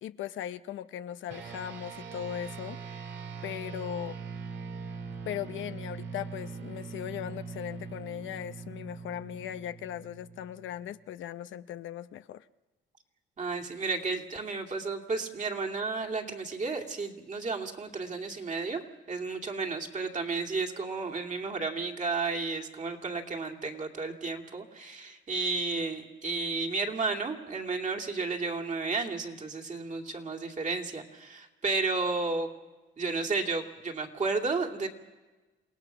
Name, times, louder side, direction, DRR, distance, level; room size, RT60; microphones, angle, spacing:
voice 1, 0.0-2.8 3.4-4.2 5.3-12.5, left 11 dB, 75° left, 12 dB, 0.7 m, -38 dB
sound 1, 1.3-11.0, right 5 dB, 65° right, 2.0 m, -42 dB
voice 2, 13.4-18.8 19.1-32.5 33.0-34.9, right 4 dB, 40° right, 1 dB, 2.7 m, -32 dB
28.5 x 18.0 x 5.9 m, 1.2 s
cardioid pair, 90°, 20 cm